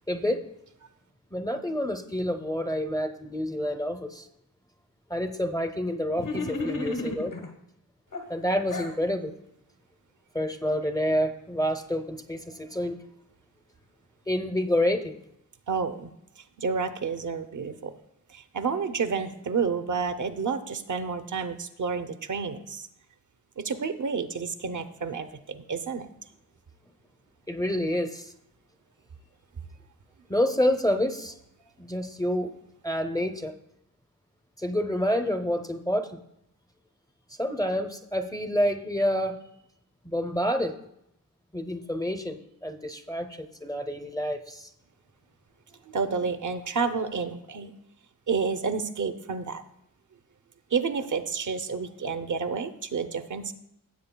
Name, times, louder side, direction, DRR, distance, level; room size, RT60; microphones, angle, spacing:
voice 1, 0.1-0.4 1.3-4.3 5.1-7.3 8.3-9.3 10.3-13.0 14.3-15.1 27.5-28.3 30.3-31.3 31.8-32.5 32.8-33.5 34.6-36.2 37.4-39.4 40.0-40.7 41.5-44.7, equal, 10° left, 6 dB, 0.6 m, -28 dB
sound 1, 6.2-7.5 8.1-9.0, left 2 dB, 65° left, 1.3 m, -32 dB
voice 2, 15.7-16.1 16.6-17.9 18.3-22.9 23.6-26.1 45.9-47.7 48.3-49.6 50.7-53.5, right 5 dB, 60° right, 9 dB, 0.6 m, -30 dB
15.5 x 7.5 x 2.2 m, 0.78 s
wide cardioid pair, 95°, 35 cm